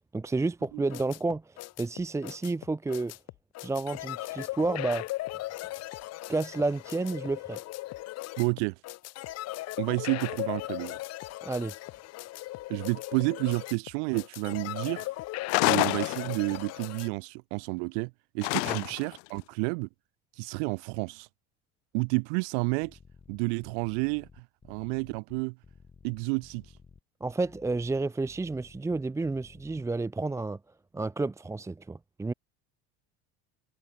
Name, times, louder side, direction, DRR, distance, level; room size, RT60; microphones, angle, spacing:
voice 1, 0.1-3.1 3.6-5.0 6.3-7.6 11.4-11.7 18.6-18.8 27.2-30.6 30.9-32.3, right 3 dB, 10° right, 1.1 m, -30 dB
sound 1, 0.6-17.1, left 17 dB, 50° left, 3.1 m, -38 dB
voice 2, 8.4-8.8 9.8-11.0 12.7-15.1 15.6-19.9 20.3-21.3 21.9-23.0 23.3-25.6 26.0-26.7, right 38 dB, 80° right, 2.3 m, -30 dB
sound 2, 15.5-16.7 18.4-19.2, left 37 dB, 80° left, 0.9 m, -27 dB
sound 3, 22.8-29.8, left 5 dB, 20° left, 7.3 m, -55 dB
cardioid pair, 150°, 33 cm